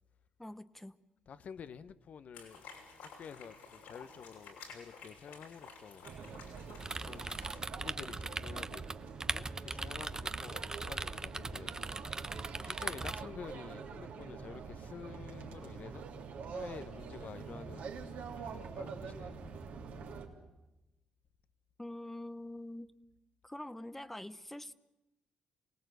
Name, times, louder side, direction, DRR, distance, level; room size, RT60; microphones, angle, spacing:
voice 1, 0.4-1.0 21.8-22.9 23.4-24.7, left 1 dB, 10° left, 1.0 m, -45 dB
voice 2, 1.3-2.6 3.0-6.1 7.0-8.8 9.3-12.0 12.6-16.0 16.5-18.0 18.3-19.4, left 7 dB, 60° left, 1.1 m, -49 dB
sound 1, 2.3-7.6, left 5 dB, 85° left, 6.2 m, -53 dB
sound 2, 6.0-20.3, right 5 dB, 75° right, 3.2 m, -46 dB
sound 3, 6.8-13.2, right 3 dB, 25° right, 0.9 m, -40 dB
27.5 x 18.0 x 8.0 m
supercardioid pair, 65°, 3 cm